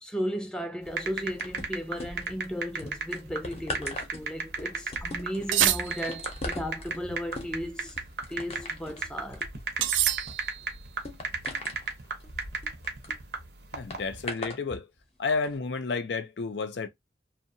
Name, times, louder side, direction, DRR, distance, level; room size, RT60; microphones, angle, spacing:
voice 1, 0.0-8.0 8.3-9.4, equal, 5° left, 0.3 m, -35 dB
sound 1, 0.9-14.3, right 4 dB, 60° right, 0.7 m, -34 dB
sound 2, 1.4-2.4 2.8-13.2 13.9-14.6 15.3-15.5, left 2 dB, 35° left, 0.7 m, -40 dB
sound 3, 5.5-6.4 9.8-10.7, right 12 dB, 85° right, 0.3 m, -27 dB
voice 2, 13.7-14.9 15.2-16.9, left 4 dB, 70° left, 0.5 m, -31 dB
2.7 x 2.1 x 2.6 m
head